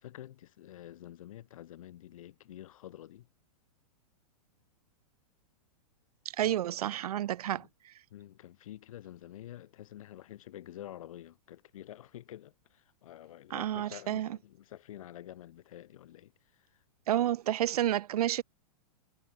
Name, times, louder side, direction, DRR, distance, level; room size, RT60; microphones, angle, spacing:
voice 1, 0.0-3.3 6.4-6.6 7.6-7.7 8.1-16.8, left 12 dB, 65° left, 6.7 m, -49 dB
voice 2, 6.4-7.6 13.5-14.3 17.1-18.4, right 12 dB, 85° right, 0.6 m, -30 dB
supercardioid pair, 165°, 19 cm